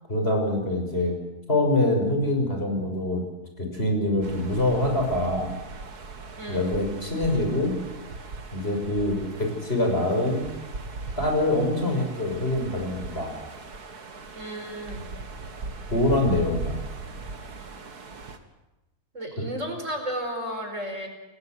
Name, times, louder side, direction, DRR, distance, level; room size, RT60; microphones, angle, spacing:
voice 1, 0.1-1.2 1.5-3.2 3.6-5.5 6.5-7.8 8.5-10.4 11.2-13.3 15.9-16.7, left 1 dB, 40° left, 3 dB, 6.4 m, -24 dB
sound 1, 4.2-18.4, right 3 dB, 75° right, 2.5 m, -38 dB
voice 2, 14.3-15.0 19.1-21.1, equal, 50° right, 4 dB, 5.4 m, -33 dB
29.5 x 20.0 x 8.0 m, 1.0 s
omnidirectional pair, 1.7 m